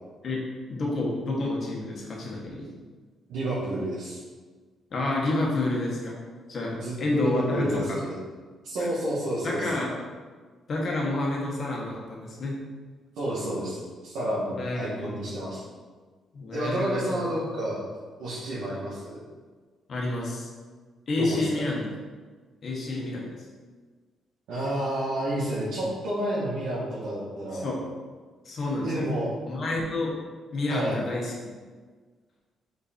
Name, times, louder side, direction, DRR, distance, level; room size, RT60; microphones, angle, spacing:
voice 1, 0.2-2.7 4.9-6.1 6.5-8.0 8.8-8.9 9.4-9.9 10.7-12.6 14.5-15.2 16.3-17.1 19.9-20.5 21.1-21.9 22.6-23.2 27.5-27.8 28.4-29.0 29.5-30.2 30.5-31.5, left 2 dB, 50° left, -2 dB, 1.4 m, -29 dB
voice 2, 3.3-4.2 6.7-8.2 8.6-9.7 13.2-15.6 16.5-17.8 18.2-19.2 21.1-21.7 24.5-27.7 28.8-29.3 30.7-31.0, right 1 dB, 85° right, -10 dB, 1.6 m, -30 dB
5.6 x 3.8 x 4.4 m, 1.5 s
cardioid pair, 90°, 0 cm